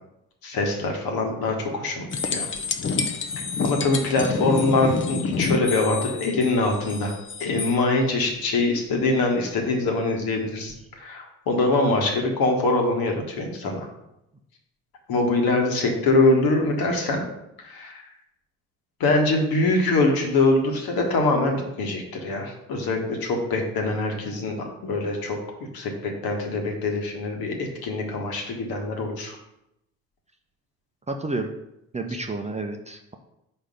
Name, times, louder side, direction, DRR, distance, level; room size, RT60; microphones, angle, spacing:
voice 1, 0.4-2.5 3.6-7.1 7.4-13.9 15.1-17.2 17.6-18.1 19.0-25.4 25.7-29.4, left 2 dB, 55° left, 2 dB, 1.6 m, -23 dB
sound 1, 2.1-7.8 10.7-10.8, left 4 dB, 25° left, 0.8 m, -28 dB
voice 2, 31.1-31.5 31.9-33.1, right 2 dB, 15° right, 4 dB, 0.7 m, -30 dB
5.0 x 4.5 x 5.3 m, 0.85 s
hypercardioid pair, 50°, 43 cm